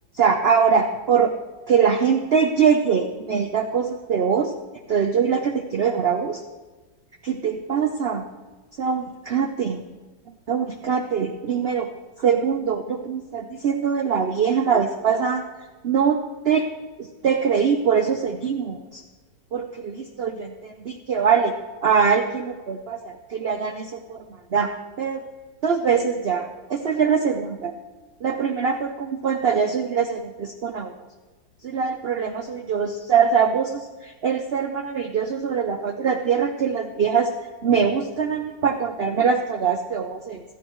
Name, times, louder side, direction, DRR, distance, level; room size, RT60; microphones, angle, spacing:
voice 1, 0.1-1.3 1.7-4.5 4.9-6.4 7.2-8.2 8.8-9.8 10.5-11.9 12.2-15.4 15.8-16.7 17.0-19.0 19.5-21.5 21.8-24.2 24.5-25.2 25.6-27.7 28.2-30.9 31.6-37.3 37.6-40.4, right 6 dB, 80° right, 6 dB, 0.5 m, -23 dB
16.0 x 14.5 x 3.1 m, 1.3 s
omnidirectional pair, 2.0 m